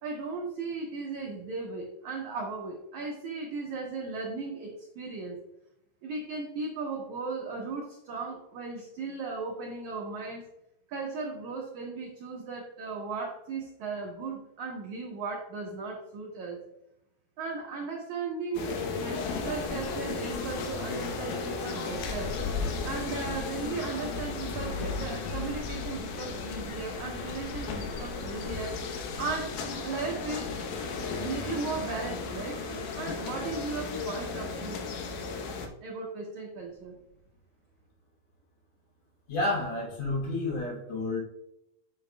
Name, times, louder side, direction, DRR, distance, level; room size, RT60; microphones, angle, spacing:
voice 1, 0.0-5.4 6.0-10.5 10.9-16.6 17.4-22.3 22.8-28.8 29.2-30.6 31.2-32.6 33.0-34.8 35.8-36.9, right 4 dB, 70° right, -2 dB, 1.8 m, -36 dB
sound 1, 18.5-35.7, left 4 dB, 75° left, 2.6 m, -35 dB
voice 2, 39.3-41.2, left 2 dB, 25° left, -4 dB, 2.2 m, -30 dB
7.7 x 6.9 x 2.2 m, 0.84 s
omnidirectional pair, 4.7 m